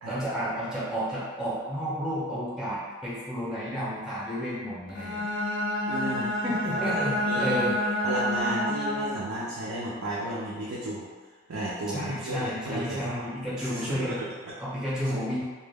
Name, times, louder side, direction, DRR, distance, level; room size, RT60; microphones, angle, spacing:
voice 1, 0.1-5.4 6.4-7.8 11.9-14.2 14.6-15.4, equal, 5° right, -9 dB, 0.6 m, -31 dB
Bowed string instrument, 4.9-9.4, left 1 dB, 60° left, 0.4 m, -28 dB
voice 2, 5.9-6.3 6.7-7.6 8.0-11.1 11.5-13.3 13.6-14.3 15.1-15.2, right 1 dB, 85° right, -7 dB, 0.5 m, -33 dB
2.2 x 2.1 x 3.3 m, 1.5 s
head